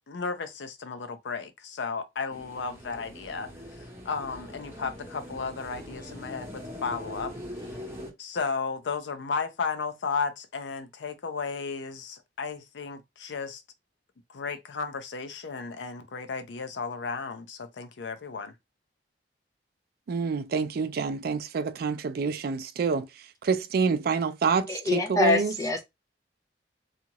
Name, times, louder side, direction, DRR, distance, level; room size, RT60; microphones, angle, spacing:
voice 1, 0.1-7.3 8.2-13.6 14.3-18.6, left 5 dB, 90° left, 0.5 m, -34 dB
sound 1, 2.3-8.1, left 1 dB, 15° right, 0.9 m, -42 dB
voice 2, 20.1-23.1 23.4-25.5, right 5 dB, 60° right, 0.4 m, -27 dB
voice 3, 24.7-25.8, left 3 dB, 20° left, 0.6 m, -25 dB
2.8 x 2.4 x 2.8 m
head